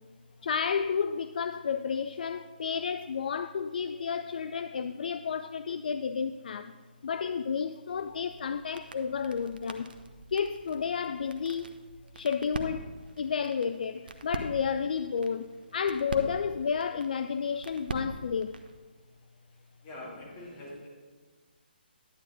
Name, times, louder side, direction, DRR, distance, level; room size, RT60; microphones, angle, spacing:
voice 1, 0.4-6.7 7.0-9.9 10.3-11.6 12.2-12.9 13.2-15.4 15.7-18.5, left 6 dB, 55° left, 0.3 m, -31 dB
sound 1, 7.9-18.8, right 3 dB, 60° right, 0.8 m, -43 dB
voice 2, 19.8-20.9, left 1 dB, 30° left, 2.7 m, -43 dB
11.0 x 8.8 x 3.7 m
figure-of-eight pair, 145°, 6 cm